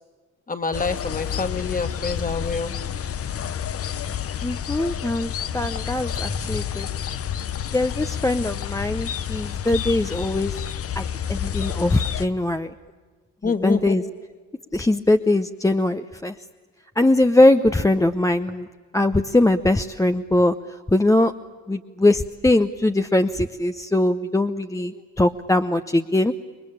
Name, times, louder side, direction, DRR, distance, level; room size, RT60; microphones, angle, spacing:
voice 1, 0.5-2.8 13.4-14.0 24.9-25.0, left 4 dB, 30° left, 8 dB, 2.2 m, -26 dB
sound 1, 0.7-12.3, left 9 dB, 50° left, 0.9 m, -29 dB
voice 2, 4.4-6.9 7.7-10.5 11.0-11.1 11.3-12.7 13.4-14.0 14.7-16.3 17.0-18.7 18.9-20.5 20.9-21.3 21.7-26.3, left 2 dB, 10° left, 7 dB, 0.8 m, -21 dB
28.5 x 22.5 x 8.7 m, 1.5 s
cardioid pair, 90°, 30 cm